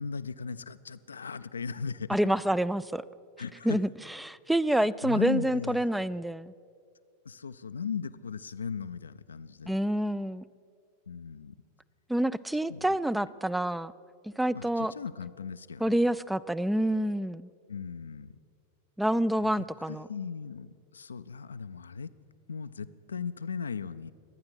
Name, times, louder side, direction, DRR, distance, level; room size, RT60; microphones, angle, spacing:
voice 1, 0.0-2.2 3.4-3.8 4.8-5.8 7.2-9.8 11.1-11.5 12.7-12.9 14.5-16.0 17.7-18.4 19.4-22.1 22.5-24.1, left 6 dB, 70° left, 14 dB, 0.4 m, -37 dB
voice 2, 2.1-3.0 3.6-3.9 4.2-6.5 9.7-10.4 12.1-13.9 14.2-14.9 15.8-17.5 19.0-20.1, right 1 dB, 5° right, 19 dB, 0.4 m, -27 dB
24.0 x 9.5 x 6.4 m, 2.3 s
figure-of-eight pair, 90°, 0 cm